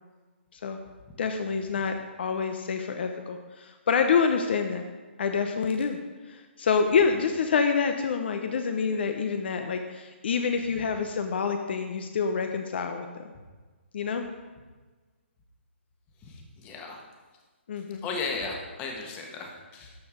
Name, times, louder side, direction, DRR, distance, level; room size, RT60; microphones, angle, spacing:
voice 1, 1.2-4.8 5.2-6.0 6.3-13.1 13.9-14.2 17.7-18.0, left 5 dB, 55° left, 6 dB, 0.8 m, -27 dB
voice 2, 16.2-17.0 18.0-19.9, left 4 dB, 20° left, 1 dB, 1.3 m, -35 dB
12.5 x 4.5 x 5.0 m, 1.3 s
hypercardioid pair, 155°, 7 cm